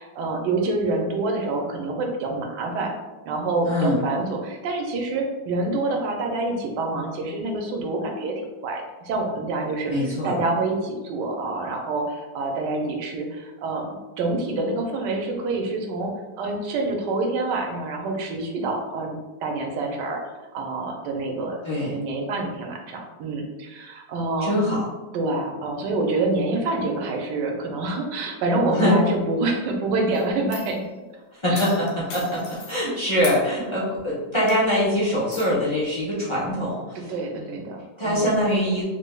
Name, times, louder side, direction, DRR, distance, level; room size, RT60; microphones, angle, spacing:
voice 1, 0.0-2.9 3.3-9.9 10.2-13.8 14.2-16.1 16.4-24.5 25.1-30.8 31.5-31.6 37.1-38.4, right 2 dB, 85° right, 2 dB, 1.2 m, -27 dB
voice 2, 3.6-4.0 9.9-10.4 21.6-21.9 24.4-24.8 28.7-29.0 31.3-37.6 38.0-38.8, equal, 30° left, -8 dB, 0.5 m, -23 dB
sound 1, 30.1-30.8 31.6-32.8 33.2-33.4 33.9-34.1 34.5-34.8 35.3-35.5, left 3 dB, 80° left, 1.3 m, -38 dB
3.5 x 3.2 x 2.2 m, 1.2 s
omnidirectional pair, 1.9 m